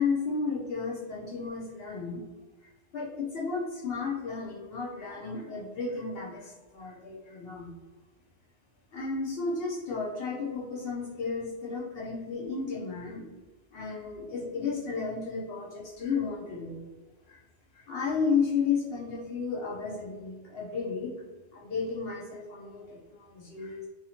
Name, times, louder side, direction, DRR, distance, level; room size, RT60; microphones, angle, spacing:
voice 1, 0.0-2.2 2.9-7.7 8.9-13.2 13.7-16.8 17.3-17.4 17.7-23.9, left 5 dB, 65° left, -4 dB, 0.8 m, -33 dB
2.6 x 2.4 x 2.7 m, 1.2 s
omnidirectional pair, 1.1 m